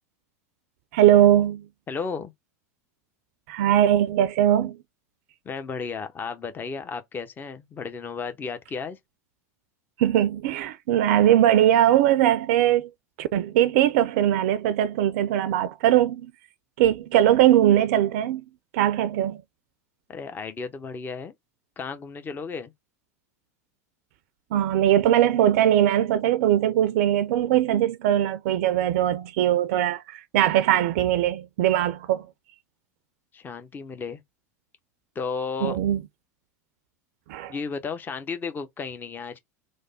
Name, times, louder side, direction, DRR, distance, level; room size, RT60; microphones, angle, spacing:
voice 1, 0.9-1.6 3.5-4.8 10.0-12.9 13.2-16.3 16.8-18.4 18.7-19.4 24.5-32.3 35.6-36.0 37.3-37.5, right 12 dB, 65° right, 0.4 m, -20 dB
voice 2, 1.9-2.3 5.4-9.0 20.1-21.3 21.8-22.7 33.3-34.2 35.2-35.8 37.5-39.4, left 5 dB, 25° left, 0.6 m, -33 dB
3.3 x 2.1 x 3.9 m
hypercardioid pair, 90°, 8 cm